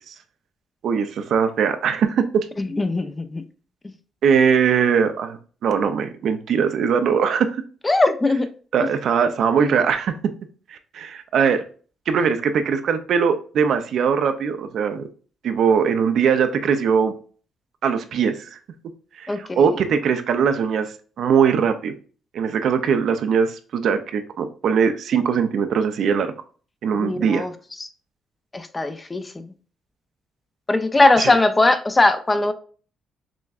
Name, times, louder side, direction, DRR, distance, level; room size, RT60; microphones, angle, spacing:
voice 1, 0.8-2.5 4.2-7.6 8.7-10.1 10.7-11.6 12.1-15.1 15.4-17.1 17.8-18.6 19.2-21.9 22.3-26.3 26.8-27.4 31.2-31.4, right 6 dB, 70° right, 0.4 m, -21 dB
voice 2, 2.6-3.4 7.8-8.5 19.3-19.6 26.9-27.5 27.8-27.9 28.5-29.4 30.7-32.5, left 2 dB, 20° left, 0.4 m, -20 dB
6.1 x 2.2 x 2.4 m
cardioid pair, 90°, 0 cm